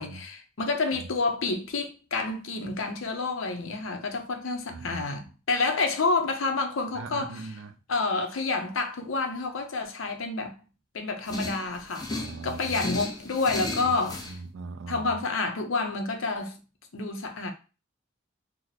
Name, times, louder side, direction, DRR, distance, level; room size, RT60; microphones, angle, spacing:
voice 1, 0.0-7.5 7.9-10.5 10.9-12.1 12.4-14.4 14.9-16.6 16.9-17.5, left 3 dB, 85° left, 0.6 m, -29 dB
voice 2, 4.7-5.1 6.9-7.7 12.1-12.9 14.3-15.1, right 4 dB, 70° right, 0.4 m, -40 dB
sound 1, 11.3-14.3, left 2 dB, 20° left, 0.5 m, -35 dB
2.9 x 2.0 x 3.9 m
head